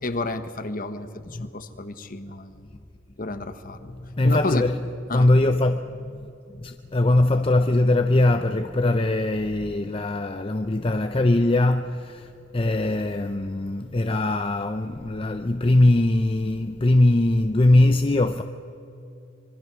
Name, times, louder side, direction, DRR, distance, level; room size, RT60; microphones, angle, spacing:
voice 1, 0.0-1.1 1.4-2.6 3.2-3.9 4.2-4.6 5.1-5.3, left 2 dB, 40° left, 1.1 m, -31 dB
voice 2, 3.9-4.8 5.1-6.3 6.6-18.4, left 2 dB, 25° left, 0.6 m, -21 dB
26.0 x 23.5 x 6.1 m
head